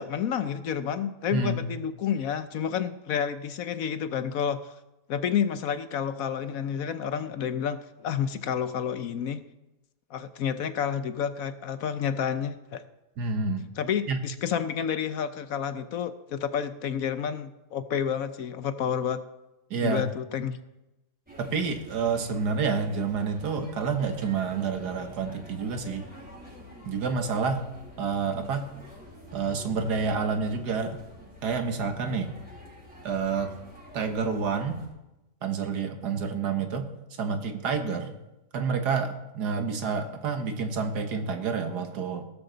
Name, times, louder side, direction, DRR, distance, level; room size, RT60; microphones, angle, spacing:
voice 1, 0.0-4.7 5.1-9.4 10.1-12.8 13.8-19.2 19.8-20.6, left 8 dB, 65° left, 12 dB, 1.0 m, -30 dB
voice 2, 1.3-1.7 13.2-13.7 14.1-14.2 19.7-20.0 21.4-26.0 26.9-27.7 28.0-28.7 29.3-31.0 31.4-32.3 33.0-33.5 33.9-34.8 35.4-36.9 37.2-38.1 38.5-42.2, right 5 dB, 75° right, 7 dB, 1.8 m, -28 dB
sound 1, 21.3-34.9, equal, 5° right, 5.8 m, -48 dB
16.5 x 13.0 x 4.0 m, 0.97 s
omnidirectional pair, 1.8 m